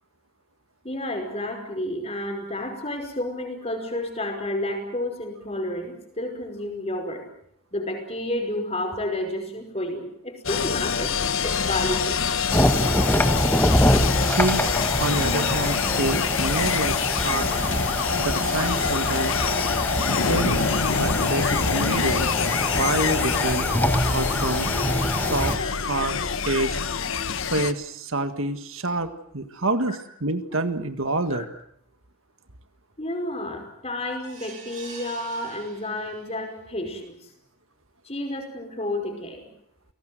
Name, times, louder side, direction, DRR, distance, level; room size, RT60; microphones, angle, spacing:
voice 1, 0.8-7.2 7.7-11.1 11.4-12.2 17.5-17.6 25.6-25.7 31.3-31.5 33.0-37.2 38.1-39.5, left 1 dB, 30° left, 4 dB, 5.2 m, -31 dB
sound 1, 10.4-27.7, left 5 dB, 65° left, 1.2 m, -25 dB
sound 2, 12.5-25.6, left 1 dB, 10° left, 1.6 m, -25 dB
voice 2, 14.3-14.7 15.0-17.5 18.2-19.4 20.3-20.6 21.0-22.3 22.7-23.7 24.1-24.8 25.2-25.6 25.8-26.8 27.5-31.5, right 2 dB, 65° right, 9 dB, 1.7 m, -27 dB
sound 3, 34.2-36.4 36.9-37.0 37.4-37.5, right 4 dB, 35° right, 6.8 m, -44 dB
29.0 x 19.0 x 7.8 m, 0.72 s
head